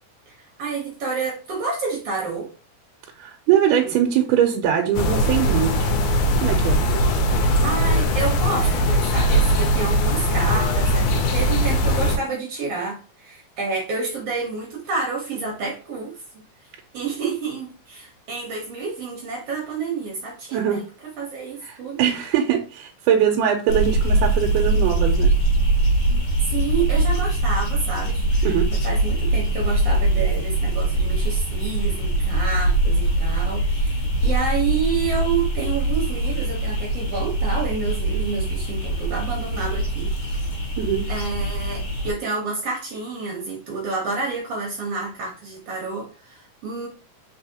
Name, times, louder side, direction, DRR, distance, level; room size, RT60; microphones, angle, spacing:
voice 1, 0.3-2.5 7.6-16.2 16.9-22.0 26.4-40.1 41.1-46.9, right 4 dB, 65° right, -1 dB, 1.7 m, -29 dB
voice 2, 3.2-5.9 6.4-6.8 9.8-9.9 20.5-20.8 21.6-25.3 28.4-28.7 40.8-41.0, right 9 dB, 85° right, 3 dB, 2.1 m, -22 dB
sound 1, 4.9-12.2, equal, 75° left, 2.0 m, -20 dB
sound 2, 23.7-42.1, right 2 dB, 55° left, 1.6 m, -22 dB
4.2 x 4.0 x 2.8 m, 0.36 s
omnidirectional pair, 3.6 m